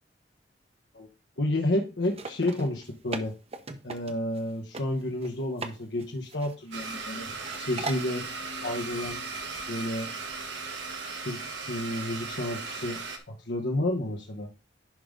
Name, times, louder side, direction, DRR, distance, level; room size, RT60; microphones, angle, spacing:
voice 1, 1.4-3.3 3.8-7.3 7.6-8.3 8.6-9.2 9.7-10.1 11.2-13.0 13.3-14.5, left 1 dB, 75° left, 1 dB, 1.1 m, -30 dB
sound 1, 2.1-4.4 4.7-4.8 5.2-5.7 6.0-7.0 7.4-8.1, right 3 dB, 35° right, 0.8 m, -38 dB
Domestic sounds home sounds, 6.7-13.2, right 4 dB, 85° right, 1.6 m, -37 dB
11.0 x 3.8 x 5.3 m, 0.32 s
head